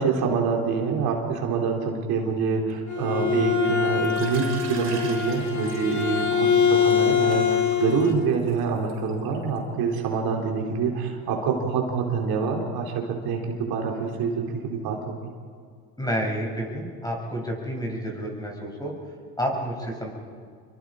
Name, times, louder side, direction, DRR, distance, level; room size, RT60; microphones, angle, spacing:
voice 1, 0.0-12.9 13.2-13.4 13.7-15.2, right 5 dB, 55° right, 1 dB, 3.9 m, -26 dB
Bowed string instrument, 2.7-8.2, left 7 dB, 45° left, 2.4 m, -24 dB
Water / Liquid, 4.0-9.6, right 4 dB, 30° right, 7.2 m, -43 dB
voice 2, 16.0-18.9 19.4-20.1, equal, 10° left, -1 dB, 7.3 m, -29 dB
28.0 x 23.0 x 5.0 m, 2.1 s
supercardioid pair, 90°, 42 cm